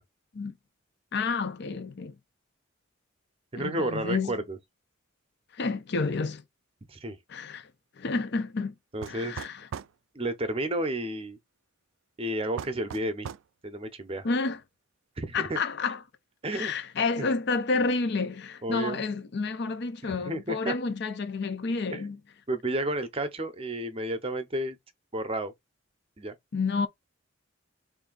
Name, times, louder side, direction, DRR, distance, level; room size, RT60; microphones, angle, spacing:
voice 1, 1.1-2.2 3.6-4.4 5.5-6.4 7.3-7.7 8.0-8.7 9.1-9.7 14.2-14.6 15.3-16.0 16.5-22.2 26.5-26.9, left 4 dB, 55° left, 0.5 m, -30 dB
voice 2, 3.5-4.6 6.9-7.2 8.9-9.5 10.1-11.4 12.2-13.3 13.6-14.3 15.2-15.6 16.4-16.7 17.2-17.3 18.6-19.0 20.3-20.7 21.9-22.0 22.5-24.8 25.1-25.5 26.2-26.3, right 1 dB, 30° right, 0.7 m, -31 dB
sound 1, 9.0-10.0 12.6-13.5, right 8 dB, 75° right, 0.3 m, -39 dB
3.4 x 2.6 x 3.8 m
head